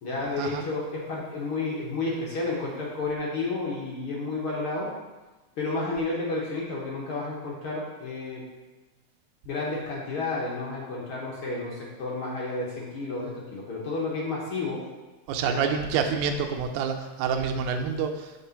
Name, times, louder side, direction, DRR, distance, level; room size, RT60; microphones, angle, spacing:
voice 1, 0.0-4.9 5.6-8.4 9.4-14.8 15.4-15.6, left 3 dB, 65° left, -4 dB, 1.4 m, -31 dB
voice 2, 15.3-18.3, right 6 dB, 80° right, 5 dB, 1.9 m, -27 dB
6.6 x 3.3 x 5.6 m, 1.2 s
omnidirectional pair, 3.5 m